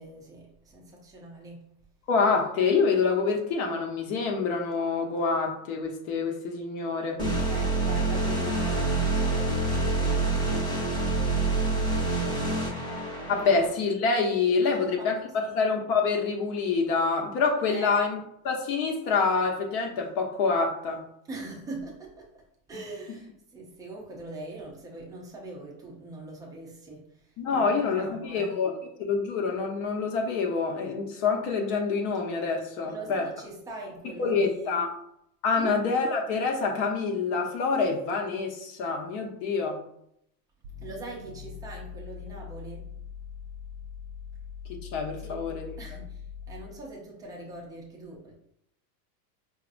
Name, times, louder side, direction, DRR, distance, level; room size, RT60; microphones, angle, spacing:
voice 1, 0.0-1.7 7.5-12.8 14.7-15.1 15.4-15.6 17.7-18.0 21.3-22.3 22.7-28.6 32.8-34.8 35.6-35.7 40.8-42.9 45.2-45.4 45.8-48.3, right 2 dB, 10° right, -3 dB, 0.4 m, -42 dB
voice 2, 2.1-7.2 13.3-15.2 15.5-18.2 18.4-21.0 27.4-28.7 29.0-33.3 34.2-34.9 35.4-39.8 44.7-45.7, left 4 dB, 60° left, 1 dB, 0.9 m, -26 dB
sound 1, 7.2-13.7, right 2 dB, 10° left, 0.8 m, -27 dB
sound 2, 40.6-46.8, left 7 dB, 85° right, 0.6 m, -42 dB
4.9 x 2.7 x 2.5 m, 0.75 s
supercardioid pair, 145°, 50 cm